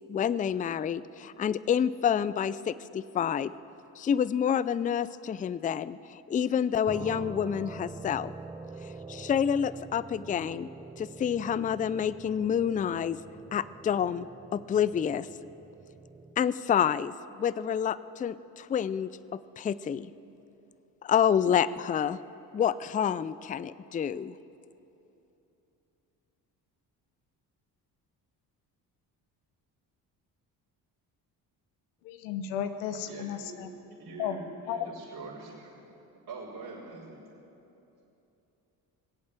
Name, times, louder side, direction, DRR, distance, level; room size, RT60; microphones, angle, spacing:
voice 1, 0.1-3.5 4.0-8.3 9.1-10.7 11.0-13.2 13.5-14.3 14.5-15.3 16.4-20.1 21.0-22.2 22.5-24.3, left 8 dB, 20° left, 17 dB, 0.3 m, -28 dB
sound 1, 6.9-16.4, right 3 dB, 10° right, 0.7 m, -45 dB
voice 2, 32.0-33.7 34.2-34.4 34.7-34.8, left 9 dB, 90° left, 9 dB, 1.0 m, -34 dB
voice 3, 33.0-33.5 34.0-36.0 36.3-37.2, right 3 dB, 55° right, -9 dB, 4.3 m, -44 dB
21.0 x 8.5 x 7.4 m, 3.0 s
supercardioid pair, 60°, 44 cm